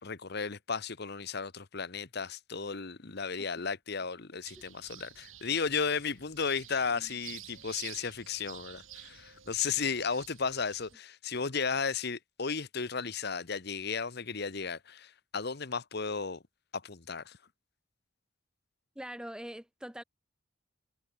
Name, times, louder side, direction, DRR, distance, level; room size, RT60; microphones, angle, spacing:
voice 1, 0.0-16.4 16.7-17.4, left 5 dB, 55° left, 1.1 m, -34 dB
sound 1, 4.4-10.9, right 12 dB, 85° right, 6.1 m, -50 dB
voice 2, 19.0-20.0, equal, 5° right, 0.8 m, -43 dB
head